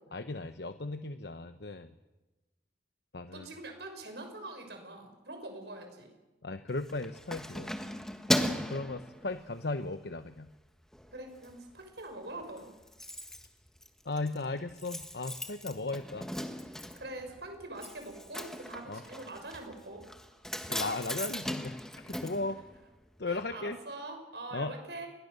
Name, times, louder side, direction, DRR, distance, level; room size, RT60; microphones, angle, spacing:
voice 1, 0.1-1.9 3.1-3.5 6.4-7.8 8.7-10.5 14.0-16.3 18.9-19.0 20.7-22.6 23.2-23.8 24.5-24.7, left 2 dB, 70° left, 9 dB, 0.9 m, -36 dB
voice 2, 3.3-6.1 11.1-12.7 16.9-20.0 22.5-22.6 23.2-25.1, right 2 dB, 70° right, 5 dB, 6.2 m, -44 dB
Keys jangling, 6.7-9.8 10.2-10.5 10.8-11.5 11.8-11.9 12.1-12.2 12.4-23.2 23.5-23.6, equal, 5° left, 1.5 m, -37 dB
28.0 x 21.5 x 6.8 m, 1.1 s
head